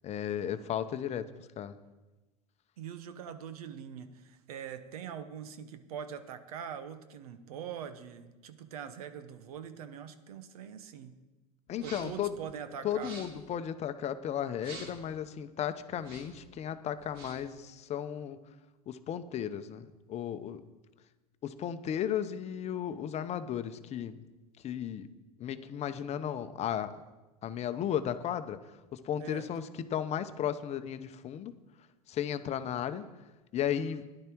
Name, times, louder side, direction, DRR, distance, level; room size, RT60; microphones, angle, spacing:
voice 1, 0.0-1.2 1.6-1.7 11.7-12.3 12.8-18.4 18.9-19.8 20.1-20.6 21.4-24.2 24.6-25.1 25.4-26.9 27.4-28.6 28.9-31.5 32.1-33.1 33.5-34.0, left 9 dB, 35° left, 11 dB, 0.8 m, -34 dB
voice 2, 2.8-11.2 11.8-13.1 29.2-29.5, right 8 dB, 80° right, 11 dB, 1.0 m, -43 dB
sound 1, 11.7-12.3 12.9-13.5 14.6-15.1 15.9-16.5 17.0-17.5, right 3 dB, 55° right, 2.5 m, -48 dB
13.5 x 11.0 x 4.6 m, 1.1 s
hypercardioid pair, 105°, 19 cm